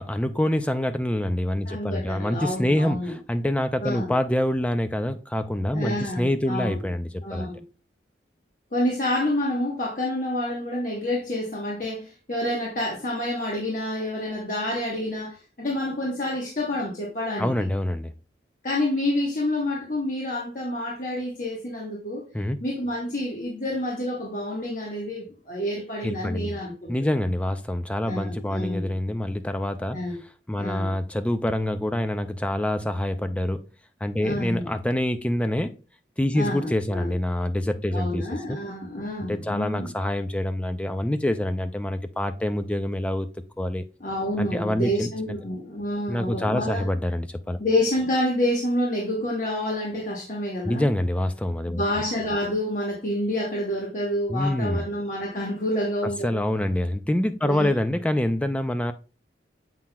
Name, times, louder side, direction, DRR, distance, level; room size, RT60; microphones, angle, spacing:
voice 1, 0.0-7.5 17.4-18.1 22.3-22.6 26.0-26.6 26.9-30.0 30.5-33.7 34.0-35.7 36.2-38.6 39.3-43.3 43.6-43.8 44.4-45.1 46.1-47.6 50.6-51.8 54.3-54.9 56.0-58.9, left 1 dB, 5° left, 0.3 m, -26 dB
voice 2, 1.7-3.2 3.8-4.1 5.7-6.9 7.2-7.6 8.7-17.5 18.6-22.3 22.6-27.2 28.1-28.9 29.9-30.2 30.5-30.9 34.2-34.7 36.3-37.1 37.9-39.9 44.0-46.9 47.6-50.8 51.7-56.4 57.4-57.7, left 1 dB, 45° left, 1.1 m, -28 dB
7.3 x 5.7 x 2.2 m
head